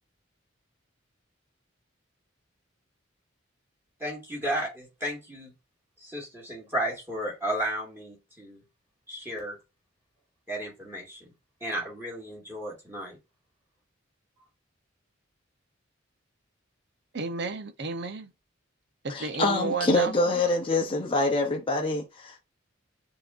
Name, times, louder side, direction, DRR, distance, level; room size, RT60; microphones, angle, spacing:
voice 1, 4.0-5.5 6.0-8.6 9.1-9.6 10.5-11.3 11.6-13.2, right 1 dB, 10° right, 2.0 m, -33 dB
voice 2, 17.1-18.3 19.0-20.4, right 4 dB, 55° right, 0.8 m, -32 dB
voice 3, 19.1-22.4, left 2 dB, 25° left, 0.7 m, -25 dB
6.6 x 3.0 x 2.5 m
head